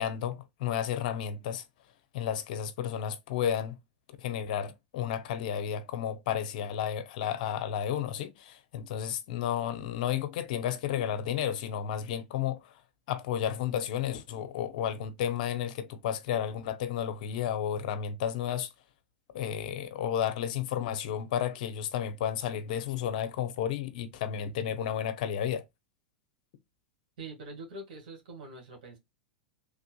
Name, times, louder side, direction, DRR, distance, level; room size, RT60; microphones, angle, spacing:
voice 1, 0.0-1.6 2.1-3.8 4.2-12.7 13.1-18.7 19.3-25.6, left 9 dB, 65° left, 0.6 m, -32 dB
voice 2, 27.2-29.0, right 2 dB, 70° right, 1.6 m, -44 dB
3.2 x 2.5 x 2.2 m
hypercardioid pair, 105°, 5 cm